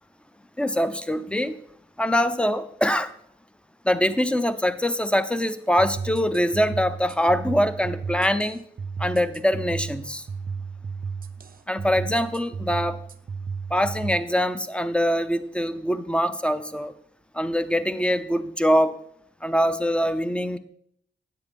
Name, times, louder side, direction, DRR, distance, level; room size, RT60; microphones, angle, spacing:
voice 1, 0.6-1.6 2.0-3.1 3.8-8.6 9.0-10.2 11.7-13.0 13.7-16.9 17.3-19.0 19.4-20.6, equal, 5° left, 12 dB, 0.7 m, -23 dB
sound 1, 5.8-14.2, right 5 dB, 45° right, 0.6 m, -34 dB
9.7 x 8.2 x 3.5 m, 0.70 s
cardioid pair, 50°, 21 cm